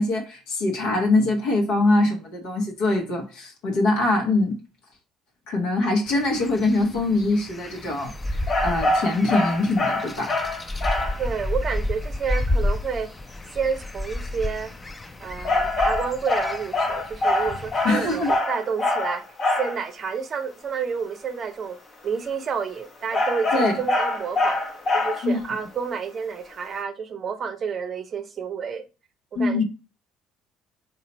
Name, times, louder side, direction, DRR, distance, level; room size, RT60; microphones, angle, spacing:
voice 1, 0.0-4.6 5.5-10.3 17.8-18.3 23.5-23.7 25.2-25.4 29.3-29.6, left 2 dB, 70° left, 1.0 m, -23 dB
sound 1, 6.1-18.4, left 1 dB, 20° left, 0.5 m, -31 dB
sound 2, 8.5-11.2 15.4-19.8 23.1-25.4, left 2 dB, 40° left, 0.9 m, -24 dB
voice 2, 11.2-13.1 13.5-14.7 15.2-19.2 19.6-21.8 22.0-24.6 24.9-28.8 29.3-29.6, right 6 dB, 45° right, 0.6 m, -30 dB
3.8 x 2.4 x 4.2 m
hypercardioid pair, 55°, 0 cm